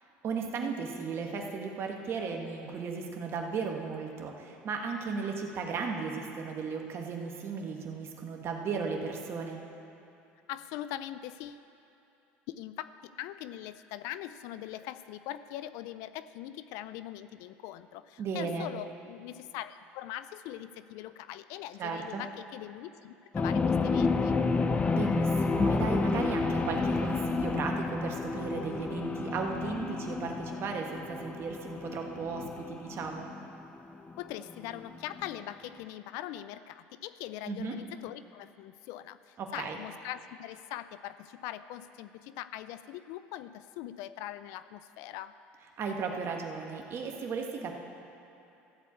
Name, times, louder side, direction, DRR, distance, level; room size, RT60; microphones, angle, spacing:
voice 1, 0.2-9.6 18.2-18.7 21.8-22.2 24.9-33.3 37.5-37.7 39.4-39.8 45.8-47.7, right 5 dB, 45° right, 2 dB, 1.5 m, -35 dB
voice 2, 10.5-11.6 12.5-24.4 34.2-45.3, left 13 dB, 75° left, 14 dB, 0.4 m, -42 dB
sound 1, 23.3-35.3, left 4 dB, 20° left, 0.6 m, -30 dB
14.0 x 4.7 x 8.3 m, 2.9 s
supercardioid pair, 95°, 6 cm